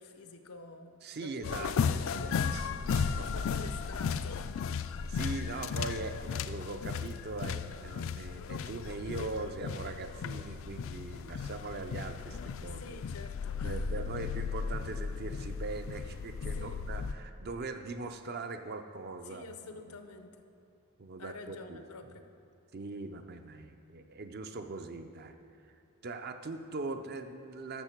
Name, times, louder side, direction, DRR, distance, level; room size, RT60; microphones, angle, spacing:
voice 1, 0.0-2.9 3.3-4.6 12.6-14.2 16.5-16.8 19.2-20.4 21.2-22.3, left 3 dB, 90° left, 8 dB, 0.7 m, -48 dB
voice 2, 1.0-3.3 5.1-13.0 13.6-20.0 21.0-21.8 22.7-25.3 25.6-25.8 26.0-27.8, right 3 dB, 45° right, 7 dB, 0.5 m, -41 dB
sound 1, 1.4-17.1, left 6 dB, 60° left, 0.3 m, -35 dB
12.5 x 6.4 x 4.5 m, 2.6 s
head